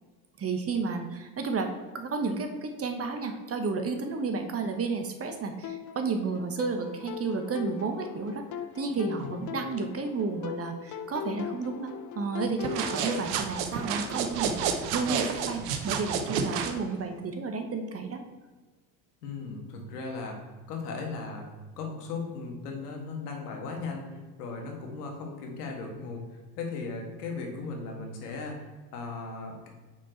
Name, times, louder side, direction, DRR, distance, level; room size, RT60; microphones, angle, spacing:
voice 1, 0.4-8.4 8.7-18.2, right 4 dB, 30° right, 5 dB, 1.1 m, -32 dB
sound 1, 5.6-13.3, left 8 dB, 40° left, 0.6 m, -39 dB
sound 2, 12.6-16.8, right 6 dB, 70° right, 0.9 m, -30 dB
voice 2, 19.2-20.4 20.7-21.5 21.8-29.7, left 4 dB, 90° left, 1 dB, 1.6 m, -37 dB
5.9 x 4.4 x 4.5 m, 1.3 s
supercardioid pair, 85°, 45 cm